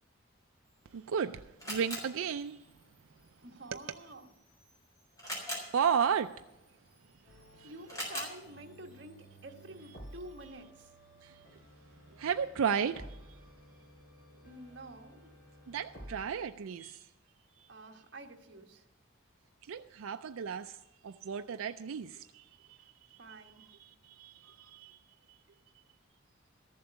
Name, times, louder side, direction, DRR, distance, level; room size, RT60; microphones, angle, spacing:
Camera, 0.6-10.5, equal, 15° left, 4.2 m, -46 dB
voice 1, 0.9-2.7 3.7-4.0 5.7-6.5 7.6-7.7 11.2-11.6 12.1-13.2 15.7-17.1 17.6-17.7 19.6-22.8 23.1-25.0 25.3-25.4, right 7 dB, 90° right, 0.4 m, -34 dB
voice 2, 3.4-4.3 7.2-10.9 14.4-15.3 17.7-18.9 23.2-23.7, right 2 dB, 60° right, 1.3 m, -49 dB
sound 1, 7.2-16.2, right 1 dB, 50° left, 4.6 m, -54 dB
14.0 x 7.5 x 6.9 m
head